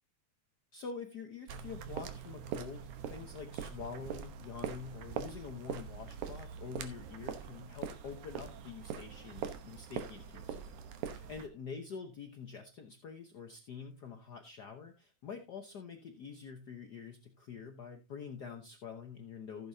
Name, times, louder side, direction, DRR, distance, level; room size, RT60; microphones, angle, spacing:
voice 1, 0.7-10.8 11.0-19.7, left 6 dB, 75° left, 5 dB, 0.9 m, -46 dB
sound 1, 1.5-11.5, right 8 dB, 85° right, 2.6 m, -43 dB
15.0 x 7.8 x 2.7 m, 0.26 s
omnidirectional pair, 3.3 m